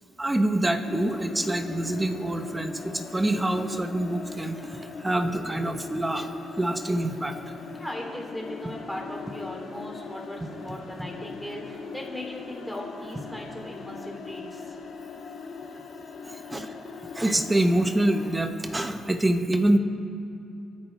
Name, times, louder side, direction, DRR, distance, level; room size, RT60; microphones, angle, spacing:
voice 1, 0.2-6.3 6.6-7.4 16.3-16.8 17.1-19.8, right 1 dB, 15° right, 6 dB, 1.2 m, -26 dB
sound 1, 0.8-18.4, left 4 dB, 75° left, 2.4 m, -40 dB
voice 2, 7.7-14.8, left 1 dB, ahead, -2 dB, 3.4 m, -38 dB
29.5 x 10.0 x 3.5 m, 2.7 s
cardioid pair, 95°, 0 cm